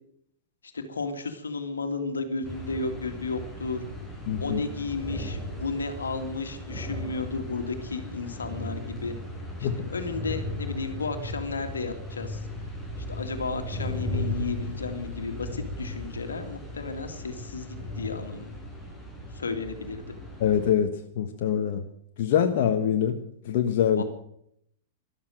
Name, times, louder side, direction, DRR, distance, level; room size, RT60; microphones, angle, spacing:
voice 1, 0.6-3.8 4.4-9.1 9.6-12.5 13.0-18.5 19.3-20.2 23.9-24.0, left 4 dB, 80° left, 7 dB, 2.2 m, -33 dB
sound 1, 2.4-20.7, left 1 dB, 15° right, 7.3 m, -36 dB
voice 2, 4.3-4.6 9.6-9.9 20.4-21.8 22.2-23.2 23.4-24.0, left 9 dB, 55° left, 5 dB, 1.3 m, -24 dB
13.0 x 12.0 x 7.7 m, 0.72 s
figure-of-eight pair, 105°, 0 cm